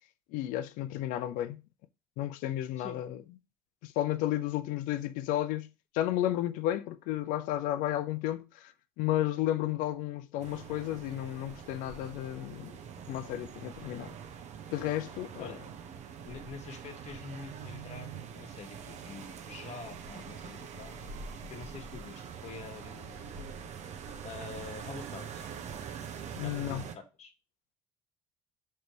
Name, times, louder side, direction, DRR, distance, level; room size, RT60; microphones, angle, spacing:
voice 1, 0.3-1.6 2.2-3.2 3.8-5.7 5.9-8.7 9.0-12.7 13.1-14.1 14.7-15.5 26.4-26.8, left 13 dB, 70° left, 0.5 m, -32 dB
sound 1, 10.4-27.0, right 7 dB, 50° right, 0.7 m, -44 dB
voice 2, 16.2-21.0 21.5-23.3 24.2-25.4 26.0-26.1 26.4-27.3, left 5 dB, 50° left, 1.3 m, -46 dB
5.0 x 3.3 x 2.9 m
hypercardioid pair, 65°, 15 cm